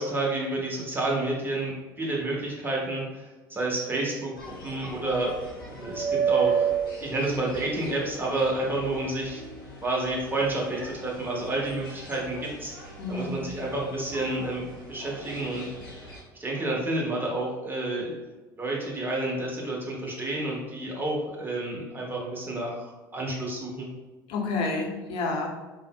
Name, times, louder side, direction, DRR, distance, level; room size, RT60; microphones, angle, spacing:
voice 1, 0.0-5.3 5.7-6.7 7.0-9.4 9.8-14.6 14.9-15.7 16.3-18.1 18.6-23.9, right 2 dB, 20° right, -3 dB, 0.9 m, -30 dB
sound 1, 4.4-16.2, right 6 dB, 90° left, 0.7 m, -33 dB
voice 2, 13.0-13.4 24.3-25.5, left 3 dB, 55° left, 0 dB, 0.6 m, -29 dB
3.5 x 2.0 x 2.2 m, 1.2 s
figure-of-eight pair, 65°, 11 cm